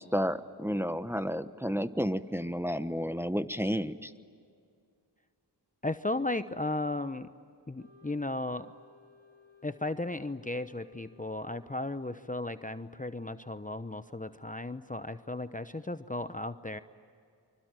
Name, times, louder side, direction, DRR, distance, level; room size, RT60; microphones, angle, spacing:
voice 1, 0.0-4.1, equal, 5° right, 11 dB, 1.1 m, -31 dB
voice 2, 5.8-7.3 7.7-8.7 9.6-16.8, left 2 dB, 20° left, 11 dB, 0.9 m, -35 dB
Wind instrument woodwind instrument, 7.8-12.9, left 5 dB, 70° right, 6.3 m, -61 dB
25.5 x 25.0 x 9.2 m, 2.3 s
cardioid pair, 40°, 43 cm